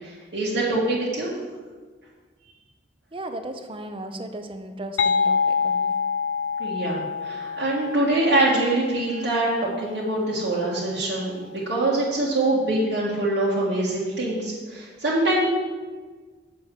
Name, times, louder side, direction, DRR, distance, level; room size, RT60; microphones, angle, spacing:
voice 1, 0.0-1.3 6.6-15.4, right 2 dB, 75° right, -8 dB, 1.7 m, -24 dB
voice 2, 3.1-5.9, right 1 dB, 30° right, 7 dB, 0.7 m, -36 dB
sound 1, 5.0-10.5, left 5 dB, 80° left, 0.4 m, -27 dB
7.9 x 6.9 x 5.4 m, 1.4 s
head